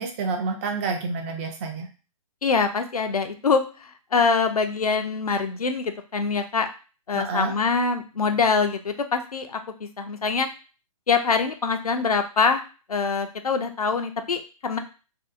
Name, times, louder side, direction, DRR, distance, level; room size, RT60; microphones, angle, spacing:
voice 1, 0.0-1.9 7.1-7.5, right 4 dB, 20° right, 3 dB, 0.3 m, -28 dB
voice 2, 2.4-6.7 7.1-9.6 10.0-10.5 11.1-12.6 12.9-14.8, left 5 dB, 85° left, 7 dB, 0.4 m, -24 dB
2.6 x 2.0 x 2.4 m, 0.34 s
figure-of-eight pair, 130°, 19 cm